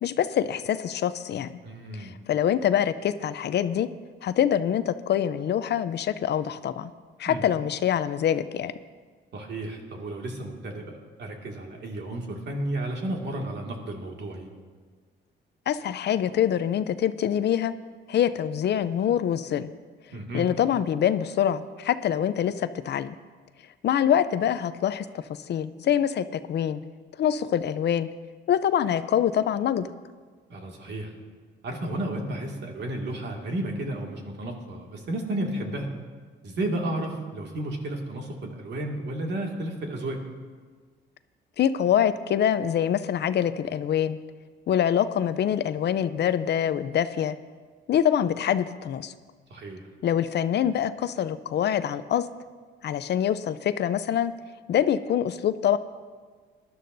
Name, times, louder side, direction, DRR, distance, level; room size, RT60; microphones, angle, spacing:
voice 1, 0.0-1.5 1.9-3.9 4.2-6.9 7.2-8.7 15.7-17.7 18.1-19.7 20.3-23.1 23.8-26.8 27.2-28.1 28.5-29.9 41.6-44.2 44.7-47.4 47.9-49.1 50.0-52.3 52.8-54.3 54.7-55.8, left 9 dB, 60° left, 13 dB, 0.5 m, -25 dB
voice 2, 1.6-2.1 7.3-7.4 9.3-14.5 20.1-20.5 30.5-31.1 31.6-35.9 36.4-40.2 49.5-49.8, right 1 dB, 60° right, 1 dB, 2.1 m, -32 dB
19.5 x 11.5 x 2.7 m, 1.5 s
cardioid pair, 90°, 20 cm